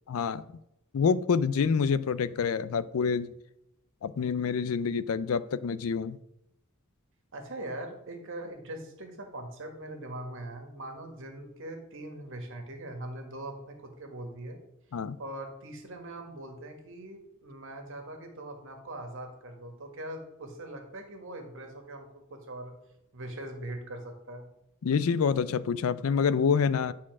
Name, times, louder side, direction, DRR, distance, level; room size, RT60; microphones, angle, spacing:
voice 1, 0.1-0.5 0.9-3.3 4.0-6.2 14.9-15.2 24.8-26.9, left 6 dB, 70° left, 16 dB, 0.4 m, -27 dB
voice 2, 7.3-14.6 15.2-22.7 23.1-24.4, right 1 dB, 65° right, 4 dB, 1.8 m, -41 dB
9.8 x 4.3 x 6.0 m, 0.83 s
head